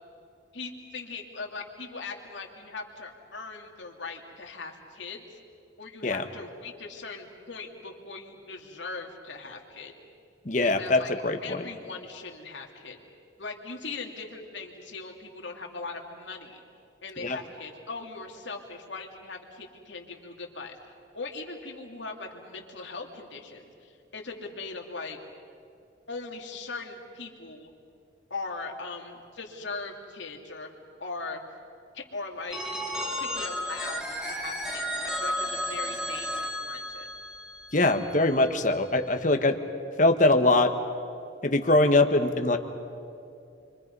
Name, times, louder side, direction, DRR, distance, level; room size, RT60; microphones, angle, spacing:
voice 1, 0.5-5.4 5.8-9.9 10.6-11.1 11.4-13.0 13.4-16.6 17.0-25.2 26.1-27.7 28.3-30.7 31.0-31.4 31.9-32.7 33.2-37.1, left 3 dB, 70° left, 1 dB, 2.7 m, -40 dB
voice 2, 10.4-11.7 17.2-17.4 37.7-39.6 40.0-40.7 41.4-42.6, left 2 dB, 40° left, 6 dB, 1.4 m, -22 dB
Telephone, 32.5-38.3, equal, 5° right, 2.0 m, -33 dB
29.5 x 24.5 x 5.5 m, 2.6 s
head